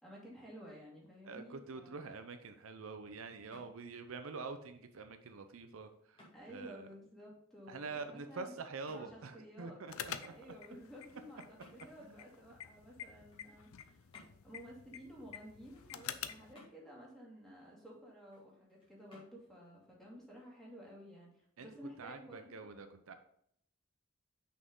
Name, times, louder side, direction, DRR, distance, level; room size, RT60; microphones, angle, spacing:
voice 1, 0.0-2.1 6.3-8.6 8.9-9.8 10.2-14.1 14.4-22.7, equal, ahead, -5 dB, 2.3 m, -53 dB
voice 2, 1.3-6.9 7.7-10.3 12.0-12.2 21.6-21.7 22.0-23.1, right 4 dB, 75° right, 8 dB, 0.6 m, -46 dB
sound 1, 2.2-21.0, left 1 dB, 25° left, 2.2 m, -67 dB
sound 2, 9.9-16.5, left 9 dB, 80° left, 0.5 m, -48 dB
6.2 x 5.6 x 3.7 m, 0.70 s
head